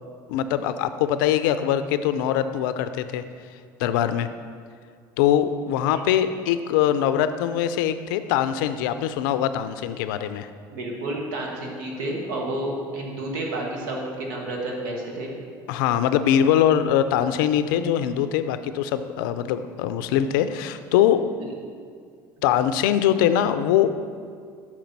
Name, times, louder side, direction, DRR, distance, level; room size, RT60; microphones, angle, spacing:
voice 1, 0.3-3.2 3.8-4.3 5.2-10.5 15.7-21.3 22.4-23.9, left 10 dB, 80° left, 11 dB, 0.4 m, -22 dB
voice 2, 10.7-15.3, right 1 dB, 80° right, 0 dB, 1.3 m, -30 dB
6.0 x 5.1 x 5.9 m, 2.1 s
hypercardioid pair, 75°, 11 cm